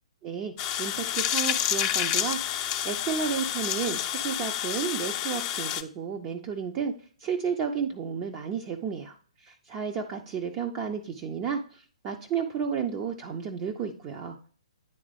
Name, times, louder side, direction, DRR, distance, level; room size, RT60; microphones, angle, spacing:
voice 1, 0.2-6.9 7.2-9.2 9.4-14.4, right 6 dB, 25° right, 3 dB, 0.5 m, -32 dB
sound 1, 0.6-5.8, left 11 dB, 25° left, 0.4 m, -29 dB
9.6 x 3.6 x 3.3 m, 0.44 s
figure-of-eight pair, 120°, 3 cm